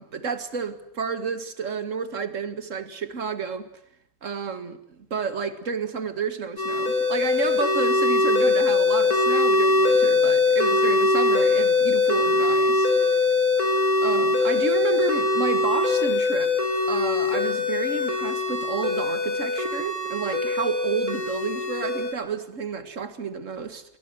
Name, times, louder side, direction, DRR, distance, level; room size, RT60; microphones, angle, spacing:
voice 1, 0.0-3.7 4.2-12.9 14.0-16.6 16.9-23.8, right 5 dB, 40° right, 2.0 m, -30 dB
sound 1, 6.6-22.1, left 3 dB, 40° left, 5.5 m, -22 dB
28.0 x 22.0 x 7.9 m
omnidirectional pair, 2.3 m